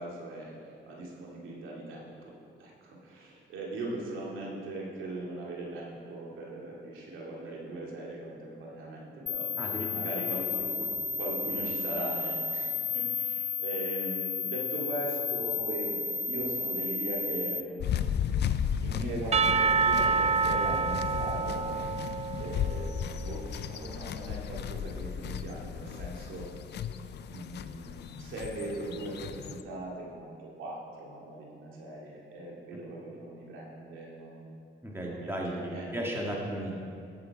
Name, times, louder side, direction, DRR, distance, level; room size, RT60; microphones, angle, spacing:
voice 1, 0.0-9.5 9.9-10.7 11.2-16.0 16.3-18.4 18.8-21.7 22.4-26.5 27.3-34.5 35.0-36.2, right 2 dB, 85° right, -3 dB, 2.5 m, -40 dB
sound 1, 9.3-17.6, left 5 dB, 30° left, 0.8 m, -32 dB
sound 2, 17.8-29.6, left 8 dB, 60° left, 0.5 m, -35 dB
Percussion / Church bell, 19.3-23.3, right 5 dB, 35° right, 0.4 m, -28 dB
voice 2, 34.8-36.7, right 1 dB, 10° right, -3 dB, 2.2 m, -35 dB
14.5 x 7.0 x 4.8 m, 2.5 s
cardioid pair, 90°, 20 cm